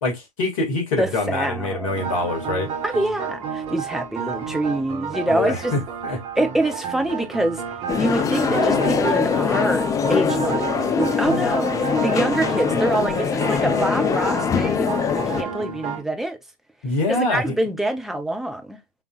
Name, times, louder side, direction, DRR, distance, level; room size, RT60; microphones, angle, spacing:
voice 1, 0.0-2.7 5.2-6.2 16.8-17.5, left 2 dB, 60° left, 2.4 m, -25 dB
voice 2, 1.0-2.0 2.8-5.7 6.4-7.6 8.0-15.1 15.4-16.4 17.1-18.8, right 1 dB, ahead, 1.0 m, -25 dB
sound 1, 1.9-16.0, right 6 dB, 35° right, 1.6 m, -31 dB
sound 2, 7.9-15.4, left 6 dB, 15° left, 0.5 m, -22 dB
5.8 x 3.5 x 2.5 m
figure-of-eight pair, 90°, 19 cm